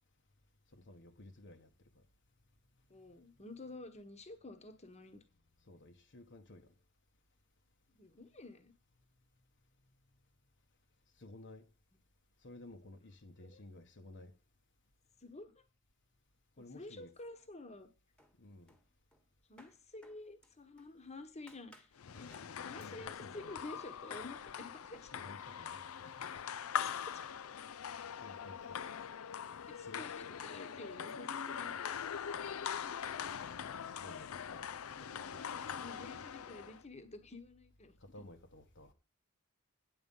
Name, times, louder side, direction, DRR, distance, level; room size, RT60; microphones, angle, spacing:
voice 1, 0.7-1.7 5.7-6.7 11.2-11.6 12.4-14.3 16.6-17.1 18.4-18.7 22.1-23.5 25.1-26.1 28.2-28.8 29.9-30.3 31.8-32.0 34.0-34.7 35.3-35.7 38.0-38.9, left 2 dB, 60° left, 1.2 m, -55 dB
voice 2, 2.9-5.2 8.0-8.7 13.4-13.6 15.2-15.6 16.6-17.9 19.5-21.9 22.2-25.1 26.6-27.2 29.7-32.4 32.8-33.0 34.9-35.1 35.5-38.2, left 2 dB, 30° left, 1.3 m, -51 dB
sound 1, 17.1-17.8 18.2-21.0 21.5-22.0 22.3-22.5 22.8-23.0, equal, 5° left, 1.4 m, -64 dB
sound 2, 22.0-36.8, left 8 dB, 75° left, 0.5 m, -42 dB
9.2 x 7.8 x 5.5 m
head